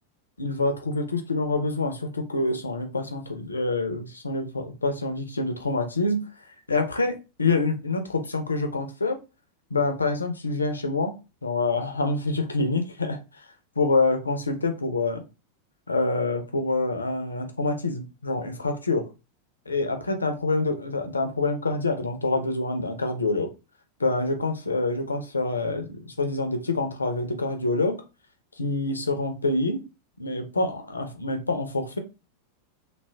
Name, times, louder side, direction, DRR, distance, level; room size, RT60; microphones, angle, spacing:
voice 1, 0.4-9.2 9.7-11.1 11.4-13.5 13.8-15.2 15.9-19.1 19.7-23.5 24.0-28.0 28.6-29.8 30.2-32.0, left 3 dB, 75° left, 5 dB, 0.7 m, -26 dB
3.3 x 2.4 x 3.4 m, 0.29 s
figure-of-eight pair, 90°, 0 cm